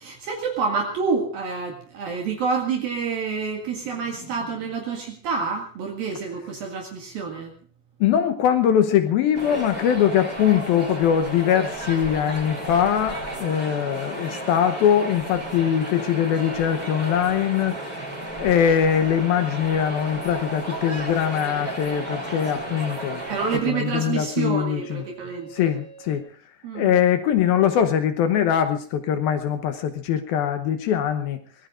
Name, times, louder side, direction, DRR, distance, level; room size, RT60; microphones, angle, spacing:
voice 1, 0.0-7.5 23.3-25.7 26.6-26.9, right 5 dB, 60° right, 1 dB, 3.6 m, -28 dB
voice 2, 8.0-17.8 18.4-23.2 23.7-25.0 25.5-26.3 26.8-31.4, left 9 dB, 70° left, 9 dB, 2.5 m, -22 dB
sound 1, 9.3-23.6, right 1 dB, 10° right, 4.1 m, -33 dB
sound 2, 20.1-26.2, right 5 dB, 80° right, 8.6 m, -46 dB
24.0 x 19.5 x 2.5 m, 0.44 s
omnidirectional pair, 5.0 m